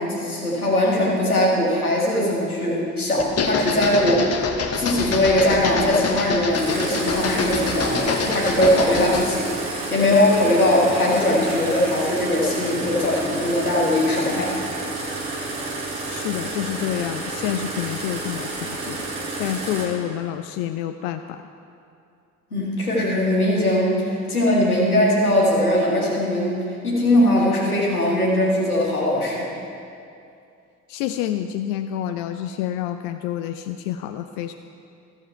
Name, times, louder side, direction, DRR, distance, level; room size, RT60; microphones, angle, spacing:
voice 1, 0.0-4.4 4.8-14.5 22.5-29.5, left 1 dB, 90° left, -4 dB, 1.5 m, -20 dB
sound 1, 3.2-9.3, left 4 dB, 35° left, 1.1 m, -26 dB
sound 2, 6.5-19.9, right 2 dB, 75° right, 2.0 m, -30 dB
voice 2, 16.0-19.0 19.4-21.4 30.9-34.5, left 11 dB, 65° left, 8 dB, 0.5 m, -28 dB
14.0 x 7.1 x 4.5 m, 2.5 s
figure-of-eight pair, 45°, 43 cm